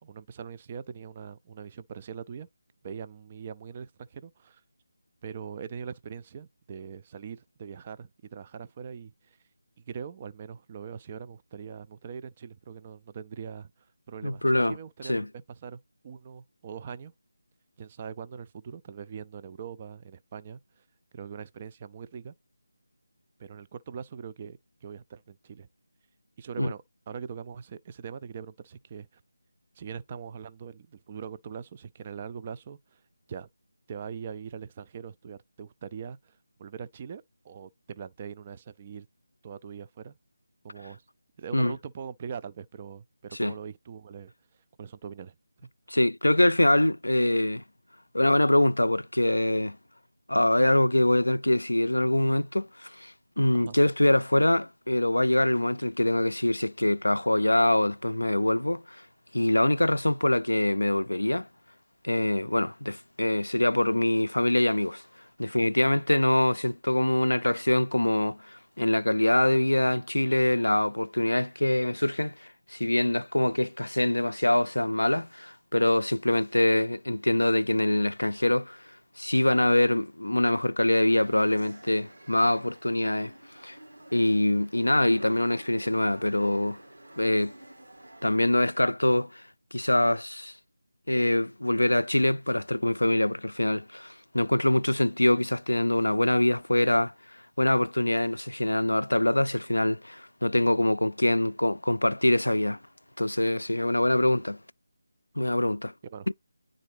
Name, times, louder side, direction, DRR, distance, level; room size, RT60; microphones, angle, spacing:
voice 1, 0.0-2.5 2.8-4.6 5.2-9.4 9.9-17.1 17.8-20.8 21.1-22.3 23.4-25.7 26.4-29.2 29.7-33.0 33.3-33.5 33.9-39.1 39.4-40.2 40.6-41.1 41.4-44.3 44.8-45.4 53.5-53.8 106.1-106.3, right 7 dB, 25° right, 0.3 m, -42 dB
voice 2, 14.2-14.8 15.1-15.3 26.6-26.7 41.5-41.7 43.4-43.5 45.9-47.6 48.1-49.8 50.3-59.0 59.3-61.5 62.0-65.0 65.4-78.8 79.2-83.3 83.6-83.8 84.1-86.8 87.2-87.5 88.2-89.4 89.7-90.5 91.1-97.1 97.6-102.8 103.2-104.6 105.4-105.9 106.3-106.4, left 1 dB, 80° left, 0.3 m, -24 dB
sound 1, 81.0-88.4, right 1 dB, 75° right, 1.7 m, -48 dB
9.7 x 3.7 x 3.1 m
figure-of-eight pair, 160°, 0 cm